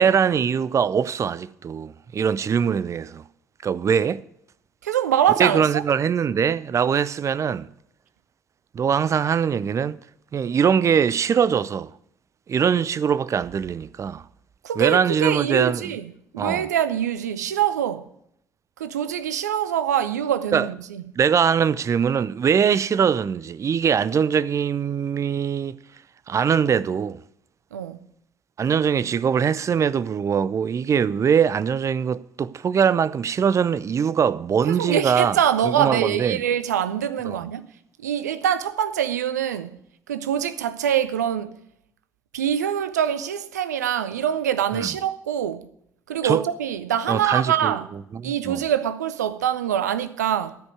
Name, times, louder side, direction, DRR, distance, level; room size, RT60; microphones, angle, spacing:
voice 1, 0.0-3.2 3.6-4.2 5.4-7.7 8.7-10.0 10.3-11.9 12.5-14.2 14.8-15.8 16.4-16.7 20.5-20.7 21.2-25.8 26.3-27.2 28.6-35.4 35.6-36.4 37.3-37.4 44.8-44.9 46.2-46.4 47.1-47.7 48.1-48.6, right 7 dB, 35° right, 0.5 m, -22 dB
voice 2, 4.8-5.8 14.6-16.0 16.3-18.1 18.8-21.0 27.7-28.0 34.7-37.6 38.0-39.8 40.1-41.6 42.3-45.7 46.1-47.9 48.2-50.6, right 9 dB, 75° right, 0.6 m, -24 dB
13.0 x 5.3 x 9.2 m
figure-of-eight pair, 50°, 9 cm